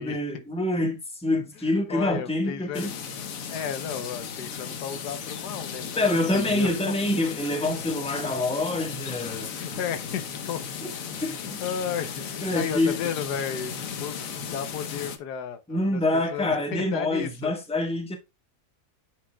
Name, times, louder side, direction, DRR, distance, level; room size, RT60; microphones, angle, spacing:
voice 1, 0.0-2.9 5.9-9.5 10.8-10.9 11.2-11.6 12.4-13.0 15.7-18.2, left 1 dB, 5° left, 1.2 m, -26 dB
voice 2, 1.6-2.9 3.5-6.9 9.5-10.6 11.2-13.7 14.0-14.2 14.5-17.5, left 8 dB, 80° left, 1.3 m, -34 dB
sound 1, 2.7-15.2, left 6 dB, 60° left, 1.2 m, -36 dB
8.7 x 5.0 x 2.2 m
omnidirectional pair, 1.7 m